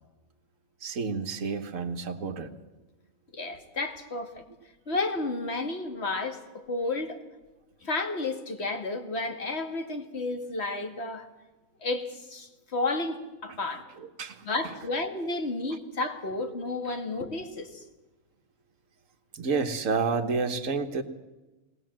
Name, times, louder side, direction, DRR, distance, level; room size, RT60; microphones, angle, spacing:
voice 1, 0.8-2.5 13.5-13.6 14.0-14.7 15.7-15.8 16.8-17.0 19.3-21.0, right 4 dB, 70° right, 6 dB, 1.7 m, -30 dB
voice 2, 3.3-4.4 4.9-7.2 7.8-11.3 11.8-13.8 14.5-17.8, left 2 dB, 50° left, 6 dB, 2.3 m, -32 dB
21.5 x 19.0 x 7.6 m, 1.1 s
omnidirectional pair, 1.4 m